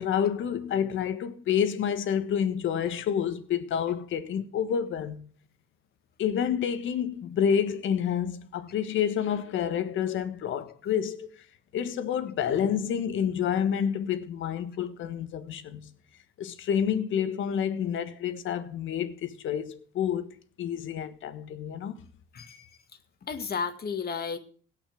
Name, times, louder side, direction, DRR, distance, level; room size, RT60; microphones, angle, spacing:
voice 1, 0.0-5.2 6.2-11.3 11.7-15.9 16.4-22.0, left 8 dB, 75° left, 1.6 m, -29 dB
voice 2, 22.3-22.7 23.3-24.4, left 6 dB, 50° left, 2.1 m, -33 dB
17.5 x 5.9 x 8.5 m
cardioid pair, 90°, 20 cm